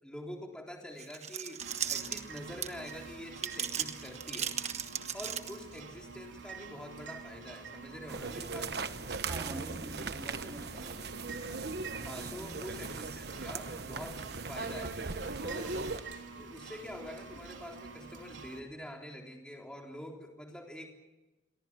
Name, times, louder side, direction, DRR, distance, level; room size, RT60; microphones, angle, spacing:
voice 1, 0.0-4.6 5.1-9.0 12.0-15.0 15.4-15.8 16.4-20.9, equal, 5° left, 1 dB, 3.5 m, -46 dB
sound 1, 1.0-2.9 3.4-5.8, right 8 dB, 35° right, 1.3 m, -36 dB
sound 2, 1.6-18.6, right 4 dB, 85° right, 3.4 m, -47 dB
sound 3, 8.1-16.0, right 4 dB, 55° right, 1.2 m, -39 dB
voice 2, 9.3-11.1 12.2-12.7, right 1 dB, 20° right, 2 dB, 3.2 m, -45 dB
29.5 x 23.0 x 6.1 m, 1.1 s
head